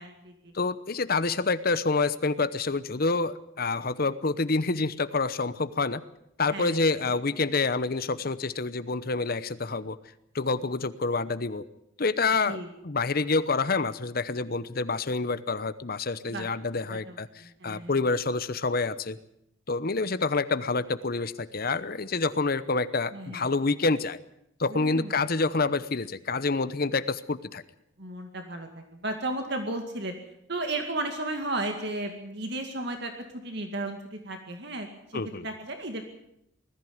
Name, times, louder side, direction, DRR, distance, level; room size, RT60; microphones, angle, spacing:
voice 1, 0.0-0.5 6.5-6.8 12.5-12.7 16.3-16.5 16.9-18.0 23.1-23.4 24.7-25.1 28.0-30.1 30.5-36.0, right 2 dB, 55° right, 5 dB, 2.2 m, -34 dB
voice 2, 0.5-6.0 6.4-10.0 10.3-11.6 12.0-12.6 12.8-19.2 19.7-24.2 24.6-27.6 35.1-35.5, left 3 dB, 45° left, 14 dB, 0.9 m, -27 dB
20.5 x 14.0 x 9.5 m, 0.78 s
head